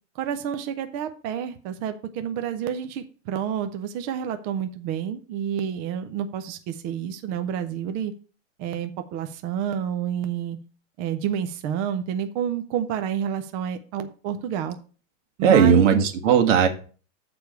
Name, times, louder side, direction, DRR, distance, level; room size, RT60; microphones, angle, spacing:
voice 1, 0.2-8.1 8.6-10.6 11.0-14.8 15.4-15.8, right 9 dB, 25° right, 8 dB, 0.4 m, -29 dB
voice 2, 15.4-16.7, right 7 dB, 75° right, 4 dB, 1.7 m, -17 dB
6.8 x 4.7 x 6.7 m, 0.38 s
supercardioid pair, 155°, 37 cm